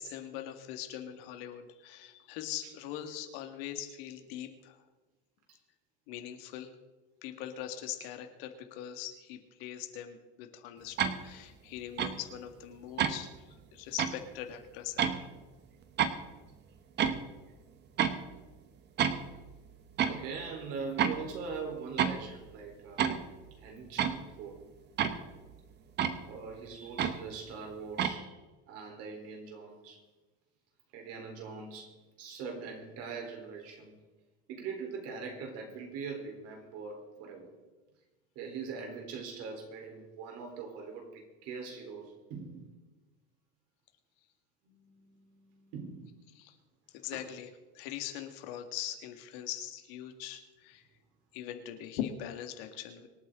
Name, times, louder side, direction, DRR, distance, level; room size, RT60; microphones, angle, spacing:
voice 1, 0.0-4.8 6.1-6.7 7.2-13.3 13.7-15.3 46.4-46.6 46.9-47.5 47.7-50.8 51.3-53.1, left 10 dB, 75° left, 6 dB, 2.1 m, -41 dB
sound 1, 11.0-11.2 12.0-12.1 13.0-13.2 14.0-14.1 15.0-15.2 16.0-16.1 17.0-17.2 18.0-18.2 19.0-19.4 20.0-20.2 21.0-21.4 22.0-22.3 23.0-23.3 24.0-24.2 25.0-25.4 26.0-26.2 27.0-27.2 28.0-28.1, right 8 dB, 35° right, 1.2 m, -29 dB
voice 2, 20.0-23.0 23.6-24.6 26.3-28.4 28.7-30.0 30.9-33.9 34.5-37.5 38.4-42.7 44.6-46.1, right 5 dB, 55° right, 2 dB, 4.0 m, -42 dB
25.5 x 9.0 x 3.9 m, 1.2 s
cardioid pair, 150°, 30 cm